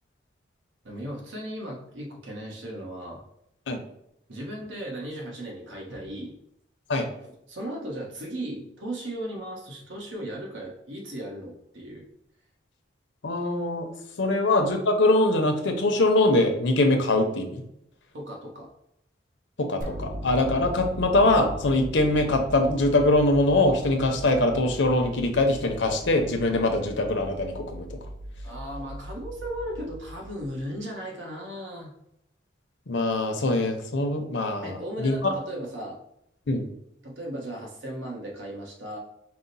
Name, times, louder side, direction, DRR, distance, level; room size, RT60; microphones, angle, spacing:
voice 1, 0.8-3.2 4.3-6.3 7.5-12.1 14.2-14.3 18.1-18.7 28.4-31.9 34.6-36.0 37.0-39.0, right 1 dB, 85° right, -1 dB, 1.1 m, -36 dB
voice 2, 13.2-13.9 14.2-17.6 19.6-27.9 32.9-35.3 36.5-36.6, left 2 dB, 75° left, 5 dB, 0.6 m, -23 dB
sound 1, 19.8-30.8, equal, 45° right, 0.5 m, -39 dB
4.8 x 2.1 x 4.0 m, 0.78 s
head